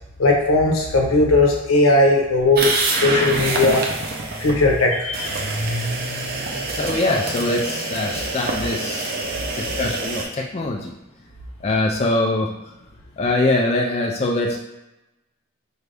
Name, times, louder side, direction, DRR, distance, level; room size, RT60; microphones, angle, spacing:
voice 1, 0.2-3.8 4.4-5.3, left 2 dB, 85° left, 0 dB, 0.8 m, -17 dB
sound 1, 2.6-4.5 5.1-10.2, right 2 dB, 45° right, 0.5 m, -26 dB
voice 2, 6.7-9.1 9.5-10.9 11.6-12.5 13.2-14.6, left 2 dB, 30° left, 0 dB, 0.3 m, -23 dB
4.5 x 2.6 x 3.3 m, 0.96 s
head